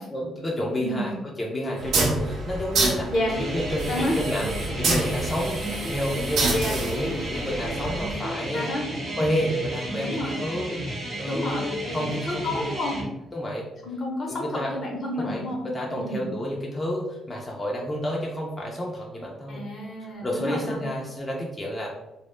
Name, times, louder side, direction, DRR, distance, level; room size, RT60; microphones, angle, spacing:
voice 1, 0.1-8.7 9.1-10.8 11.2-12.5 13.3-13.7 14.3-14.7 15.1-19.6 20.2-21.9, equal, 15° left, -3 dB, 0.4 m, -30 dB
sound 1, 1.8-8.1, right 2 dB, 70° right, 0.5 m, -28 dB
sound 2, 3.3-13.1, right 1 dB, 45° right, 0.9 m, -33 dB
voice 2, 10.0-10.4 11.3-13.0 13.8-15.6 16.0-16.3 19.5-20.8, left 1 dB, 55° left, 0 dB, 0.7 m, -30 dB
2.1 x 2.1 x 3.0 m, 0.95 s
cardioid pair, 90°, 0 cm